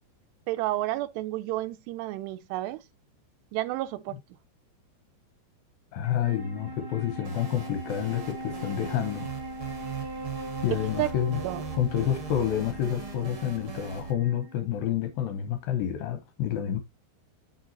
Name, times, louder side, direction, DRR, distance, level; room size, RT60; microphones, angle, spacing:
voice 1, 0.5-2.8 3.5-4.2 11.0-11.1 11.4-11.6, right 16 dB, 85° right, 2.6 m, -30 dB
voice 2, 5.9-9.3 10.6-11.4 11.7-16.8, left 10 dB, 75° left, 2.3 m, -29 dB
Wind instrument woodwind instrument, 6.0-15.5, equal, 10° right, 1.3 m, -41 dB
sound 1, 7.2-14.1, right 7 dB, 55° right, 1.5 m, -40 dB
6.7 x 6.4 x 2.8 m
omnidirectional pair, 5.0 m